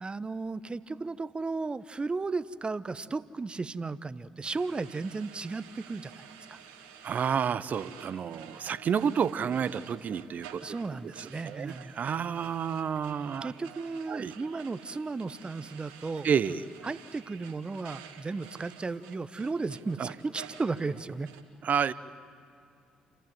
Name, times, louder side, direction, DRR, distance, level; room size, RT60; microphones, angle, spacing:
voice 1, 0.0-6.1 6.5-6.6 10.6-11.9 13.4-16.3 16.8-21.3, right 3 dB, 30° right, 15 dB, 0.9 m, -35 dB
sound 1, 4.4-21.4, right 7 dB, 85° right, 1.7 m, -51 dB
voice 2, 7.0-10.6 11.2-13.5 14.1-14.3 16.2-16.6 20.0-20.1 21.6-21.9, right 7 dB, 55° right, 16 dB, 0.8 m, -30 dB
29.5 x 14.5 x 9.5 m, 2.4 s
hypercardioid pair, 50°, 3 cm